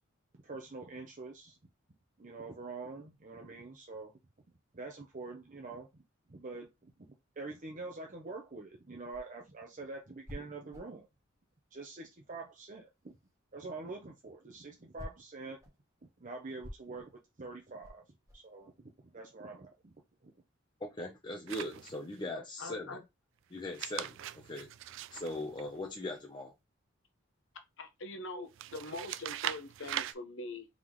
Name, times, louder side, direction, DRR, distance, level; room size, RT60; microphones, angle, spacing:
voice 1, 0.3-1.6 2.2-4.1 4.7-5.9 6.3-7.1 7.4-11.1 11.7-13.1 13.5-15.6 16.2-18.0 18.3-18.7 19.0-19.9 20.2-20.3, right 3 dB, 40° right, 0.8 m, -45 dB
sound 1, 9.1-12.5 12.8-18.6, equal, 15° right, 1.5 m, -51 dB
voice 2, 20.8-23.0 23.5-24.2 24.5-24.7 25.1-26.5, left 1 dB, 25° left, 0.8 m, -40 dB
sound 2, 21.5-22.2 23.6-26.2 28.5-30.1, right 12 dB, 70° right, 0.3 m, -41 dB
voice 3, 22.3-23.0 27.8-30.7, left 2 dB, 70° left, 0.9 m, -43 dB
3.8 x 3.6 x 3.1 m
head